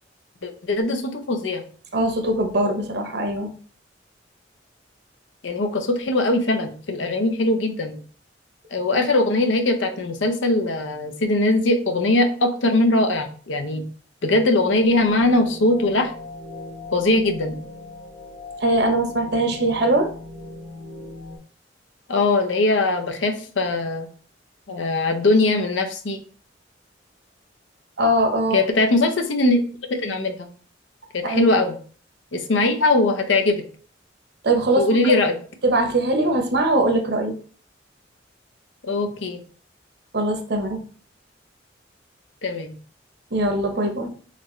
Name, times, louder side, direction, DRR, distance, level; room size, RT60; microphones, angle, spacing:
voice 1, 0.4-1.6 5.4-8.0 8.7-13.9 14.2-16.1 16.9-17.6 22.1-24.1 24.7-26.2 28.5-29.6 30.0-30.5 31.1-31.7 32.3-33.6 34.8-35.4 38.9-39.4 42.4-42.8, left 2 dB, 85° left, 5 dB, 0.7 m, -21 dB
voice 2, 1.9-3.5 18.6-20.1 28.0-28.6 31.2-31.5 34.4-35.0 35.6-37.3 40.1-40.8 43.3-44.1, right 1 dB, 60° right, 5 dB, 0.8 m, -21 dB
sound 1, 14.7-21.4, left 2 dB, 65° left, 1.4 m, -39 dB
4.2 x 3.2 x 3.1 m, 0.43 s
head